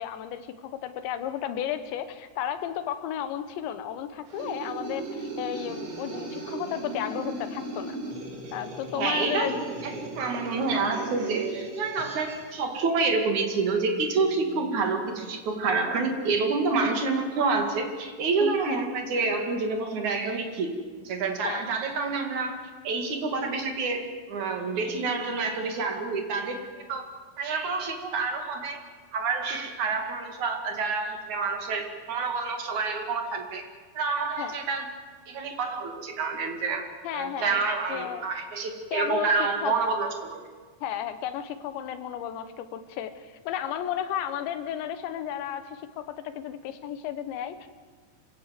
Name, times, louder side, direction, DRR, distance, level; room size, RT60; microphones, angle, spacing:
voice 1, 0.0-8.0 8.5-9.6 18.4-18.9 21.4-21.6 34.4-34.6 37.0-37.6 37.9-38.3 38.9-39.3 39.6-39.7 40.8-47.7, left 10 dB, 75° left, 10 dB, 3.2 m, -33 dB
sound 1, 4.3-12.5, right 3 dB, 90° right, 7.7 m, -37 dB
voice 2, 8.9-9.9 10.2-27.0 27.4-28.8 29.1-33.6 33.9-34.9 35.3-36.8 37.1-40.4, right 4 dB, 45° right, 4 dB, 2.9 m, -28 dB
27.0 x 17.0 x 7.6 m, 1.5 s
omnidirectional pair, 5.7 m